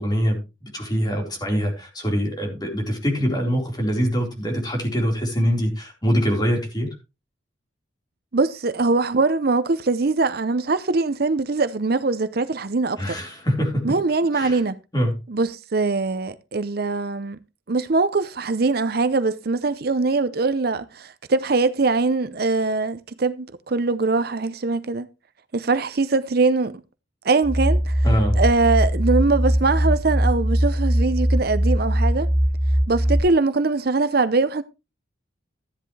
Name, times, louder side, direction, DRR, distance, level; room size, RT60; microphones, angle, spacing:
voice 1, 0.0-6.9 13.0-13.8 14.3-14.6 14.9-15.1 28.0-28.4, equal, 20° left, 4.3 m, -24 dB
voice 2, 8.3-13.2 13.8-14.8 15.3-17.4 17.7-25.1 25.5-26.8 27.2-28.0 28.4-32.3 32.9-34.6, right 3 dB, 55° right, 0.6 m, -22 dB
sound 1, 27.4-33.2, equal, 10° right, 4.9 m, -20 dB
13.5 x 10.0 x 3.3 m
head